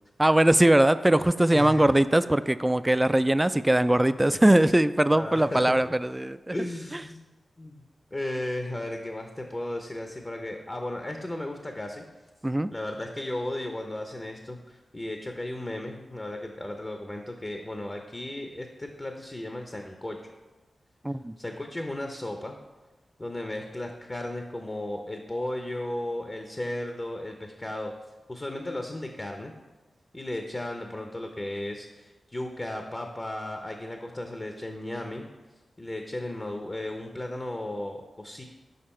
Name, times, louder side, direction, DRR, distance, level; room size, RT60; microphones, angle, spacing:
voice 1, 0.2-6.5 6.9-7.0 12.4-12.7 21.0-21.4, right 1 dB, 20° right, 14 dB, 0.3 m, -21 dB
voice 2, 1.5-1.9 5.1-5.6 6.5-7.3 7.6-7.8 8.1-12.0 12.7-20.2 21.4-22.6 23.2-27.9 28.3-29.5 30.1-35.3 35.8-38.4, left 1 dB, 30° left, 4 dB, 0.7 m, -35 dB
6.6 x 5.1 x 4.3 m, 1.2 s
cardioid pair, 40°, 0 cm